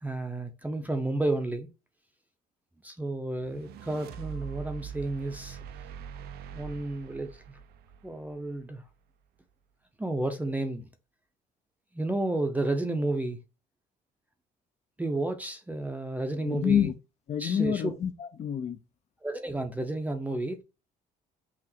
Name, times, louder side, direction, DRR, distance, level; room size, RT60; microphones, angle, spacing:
voice 1, 0.0-1.7 2.8-5.6 6.5-7.6 8.0-8.8 10.0-10.9 11.9-13.4 15.0-16.9 17.4-17.9 19.2-20.6, right 2 dB, 10° right, 0.6 m, -31 dB
sound 1, 3.4-8.7, right 8 dB, 70° right, 0.5 m, -43 dB
voice 2, 16.4-16.9 17.3-18.8, left 8 dB, 40° left, 0.5 m, -27 dB
5.9 x 2.5 x 2.7 m
cardioid pair, 110°, 17 cm